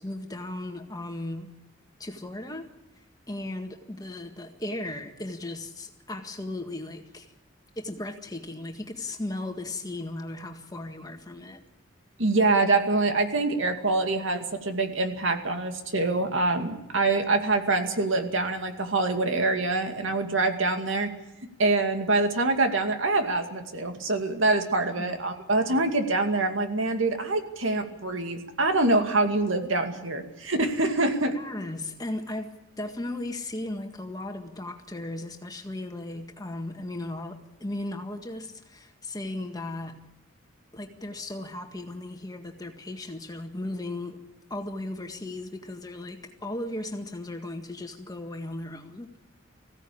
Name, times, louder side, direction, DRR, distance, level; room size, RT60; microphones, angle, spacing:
voice 1, 0.0-1.5 2.0-2.7 3.3-7.3 7.8-11.6 25.1-25.2 25.7-25.9 31.3-40.0 40.7-44.2 44.5-49.1, left 1 dB, 20° left, 4 dB, 1.8 m, -36 dB
voice 2, 12.2-21.1 21.6-31.4, right 2 dB, 75° right, 5 dB, 2.3 m, -25 dB
20.5 x 16.0 x 8.6 m, 0.94 s
head